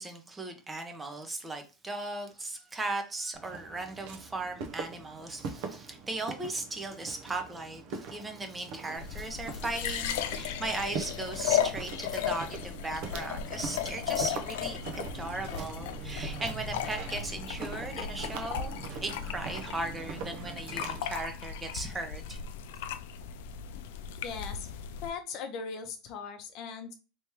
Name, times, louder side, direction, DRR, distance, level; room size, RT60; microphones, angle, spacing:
voice 1, 0.0-14.8 15.1-18.7 19.0-22.4, right 2 dB, 15° right, 0.8 m, -37 dB
Walk footsteps, 3.3-21.0, right 5 dB, 60° right, 0.8 m, -42 dB
sound 1, 9.0-25.1, left 9 dB, 80° left, 0.3 m, -36 dB
voice 2, 24.2-24.7 25.0-26.9, left 6 dB, 55° left, 0.7 m, -39 dB
3.4 x 3.0 x 2.9 m
supercardioid pair, 125°, 0 cm